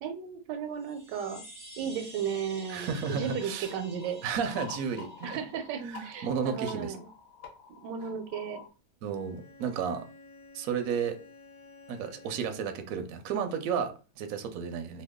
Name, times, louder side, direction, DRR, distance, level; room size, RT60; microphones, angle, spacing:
voice 1, 0.0-1.4 1.8-4.2 5.2-7.1 7.8-8.6, right 7 dB, 85° right, 1.2 m, -35 dB
sound 1, 0.7-5.8, right 1 dB, 25° left, 1.0 m, -50 dB
voice 2, 2.7-3.7 4.2-5.4 5.8-7.0 9.0-10.0 10.5-11.2 11.9-15.0, right 6 dB, 70° right, 0.9 m, -33 dB
sound 2, 3.0-8.7, left 6 dB, 45° left, 0.9 m, -48 dB
Bowed string instrument, 9.1-12.9, left 3 dB, 65° left, 0.4 m, -53 dB
2.9 x 2.2 x 3.5 m
omnidirectional pair, 1.8 m